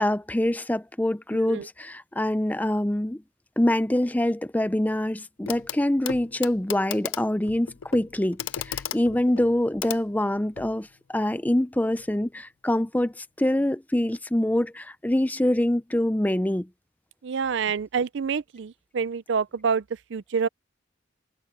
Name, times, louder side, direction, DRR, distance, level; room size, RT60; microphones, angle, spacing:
voice 1, 0.0-3.2 3.6-16.7, left 1 dB, 10° left, 0.5 m, -25 dB
Clock, 5.5-5.8 6.1-10.8 12.0-12.1, left 10 dB, 85° left, 0.5 m, -36 dB
voice 2, 17.2-19.8 20.1-20.5, right 6 dB, 60° right, 0.5 m, -27 dB
head